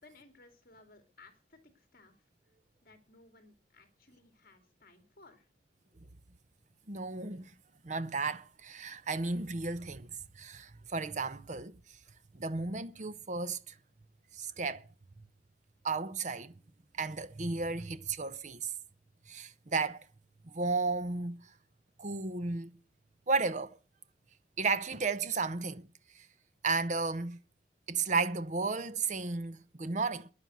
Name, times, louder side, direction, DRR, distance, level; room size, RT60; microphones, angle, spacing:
voice 1, 0.0-2.1 2.8-5.5, left 3 dB, 55° left, 2.6 m, -59 dB
voice 2, 6.9-7.5 7.8-10.1 10.3-11.8 12.3-13.7 14.3-14.8 15.8-16.5 16.9-18.7 19.3-20.1 20.4-21.4 22.0-22.7 23.3-23.8 24.6-25.9 26.1-26.3 26.6-27.4 27.9-30.3, right 4 dB, 45° right, 0.9 m, -33 dB
14.5 x 10.5 x 6.3 m
head